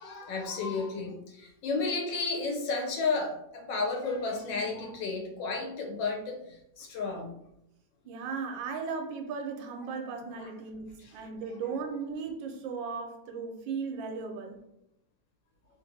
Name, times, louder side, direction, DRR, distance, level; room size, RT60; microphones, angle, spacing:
voice 1, 0.0-7.3 10.4-10.5 11.0-11.1, left 4 dB, 80° left, 1 dB, 1.3 m, -32 dB
voice 2, 8.0-14.6, right 5 dB, 85° right, 4 dB, 1.3 m, -36 dB
3.2 x 2.5 x 2.7 m, 0.82 s
omnidirectional pair, 2.1 m